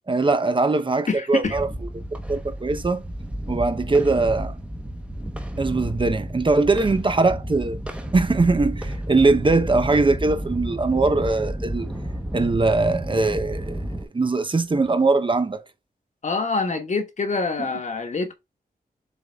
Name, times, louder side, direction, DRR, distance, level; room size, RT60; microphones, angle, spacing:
voice 1, 0.1-1.7 2.3-3.0 3.5-4.5 5.6-7.8 8.1-11.9 12.3-15.6, right 3 dB, 30° right, 0.8 m, -21 dB
voice 2, 1.1-1.6 16.2-18.3, left 4 dB, 50° left, 1.4 m, -25 dB
sound 1, 1.4-14.0, right 1 dB, 5° right, 1.1 m, -31 dB
7.3 x 3.8 x 3.5 m
wide cardioid pair, 120°, 16 cm